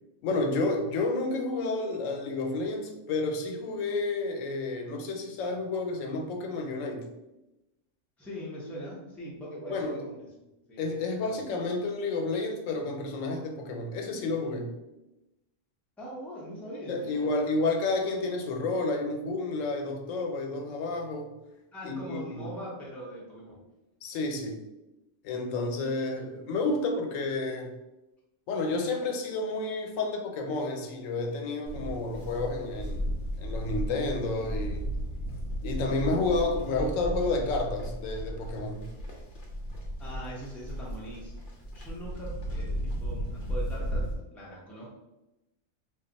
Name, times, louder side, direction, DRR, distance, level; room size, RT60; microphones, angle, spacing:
voice 1, 0.2-7.1 9.7-10.0 10.8-14.8 16.9-21.3 21.8-22.5 24.0-24.6 25.2-27.7 28.5-33.1 33.4-34.9 35.6-38.9, left 3 dB, 90° left, 3 dB, 1.0 m, -30 dB
voice 2, 8.2-10.3 10.7-10.8 11.2-11.4 16.0-17.3 21.7-23.6 40.0-41.3 41.7-42.7 43.0-44.9, equal, ahead, -5 dB, 0.6 m, -41 dB
Livestock farm animals working animals, 31.7-44.1, equal, 50° left, 0.7 m, -35 dB
2.4 x 2.3 x 3.8 m, 0.96 s
omnidirectional pair, 1.3 m